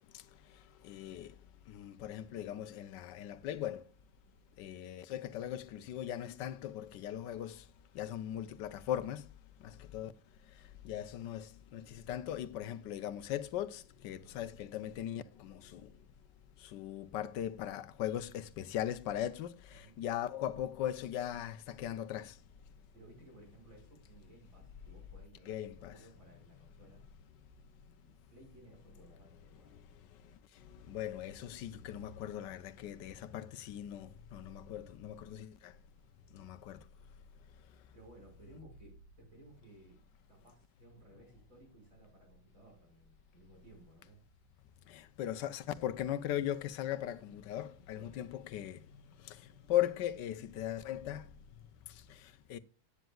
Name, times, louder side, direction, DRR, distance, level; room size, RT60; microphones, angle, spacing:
voice 1, 0.8-1.3 1.7-3.8 4.6-7.6 7.9-9.2 9.6-10.1 10.8-15.9 16.7-22.3 25.5-25.9 30.9-35.7 36.3-36.8 44.9-48.8 49.2-49.4 49.7-51.2 52.5-52.6, left 11 dB, 85° left, 1.3 m, -39 dB
voice 2, 19.7-20.0 22.9-27.0 28.0-29.8 37.9-40.0 40.3-44.2 47.9-48.3, right 1 dB, 45° right, 6.0 m, -59 dB
15.5 x 9.1 x 2.3 m
omnidirectional pair, 1.9 m